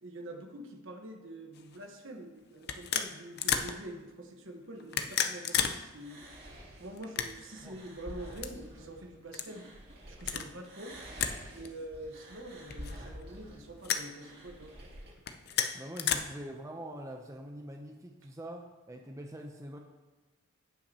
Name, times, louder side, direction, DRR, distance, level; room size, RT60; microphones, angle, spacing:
voice 1, 0.0-6.3 6.8-9.7 10.1-11.0 11.5-14.7, right 1 dB, 65° right, 4 dB, 1.2 m, -45 dB
sound 1, 1.6-1.8 2.6-3.7 4.8-5.8 6.1-6.2 7.0-7.6 8.3-8.5 9.3-9.5 10.2-10.5 11.2-11.4 11.6-11.7 12.7-13.2 13.8-14.1 15.2-16.2, left 8 dB, 50° left, 0.5 m, -32 dB
sound 2, 5.9-10.3 10.6-15.1, equal, 50° right, 2.4 m, -49 dB
voice 2, 15.7-19.8, right 1 dB, 15° right, 2 dB, 0.6 m, -44 dB
17.0 x 5.8 x 2.9 m, 1.2 s
head